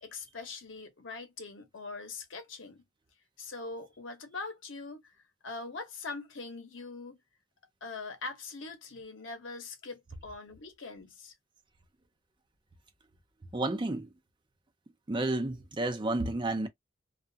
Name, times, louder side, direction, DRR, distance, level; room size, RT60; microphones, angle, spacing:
voice 1, 0.0-2.8 3.4-5.1 5.4-7.2 7.8-11.3, left 3 dB, 70° left, 0.8 m, -42 dB
voice 2, 13.5-14.1 15.1-16.7, right 2 dB, 25° right, 0.5 m, -31 dB
2.4 x 2.2 x 2.6 m
head